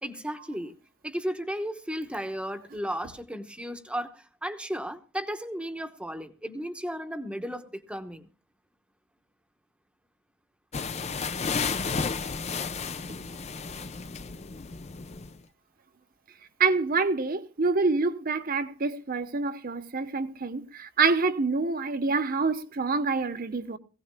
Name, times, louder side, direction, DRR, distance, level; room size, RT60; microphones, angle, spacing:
voice 1, 0.0-0.7 1.0-8.3, equal, 5° right, 1.0 m, -34 dB
sound 1, 10.7-15.4, left 5 dB, 30° left, 0.6 m, -32 dB
voice 2, 16.6-23.8, right 4 dB, 45° right, 0.9 m, -26 dB
20.5 x 16.5 x 2.2 m
head